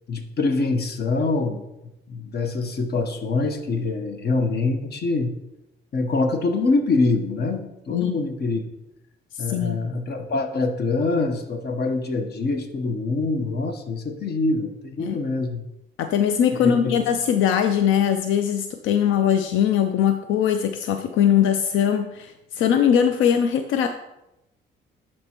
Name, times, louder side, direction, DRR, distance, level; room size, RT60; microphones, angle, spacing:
voice 1, 0.1-1.6 2.1-5.3 5.9-8.6 9.4-15.6 16.5-16.9, left 3 dB, 55° left, 6 dB, 1.0 m, -24 dB
voice 2, 9.5-9.9 15.0-15.2 16.0-23.9, left 9 dB, 85° left, 7 dB, 0.4 m, -21 dB
10.5 x 4.4 x 2.9 m, 0.91 s
cardioid pair, 90°, 20 cm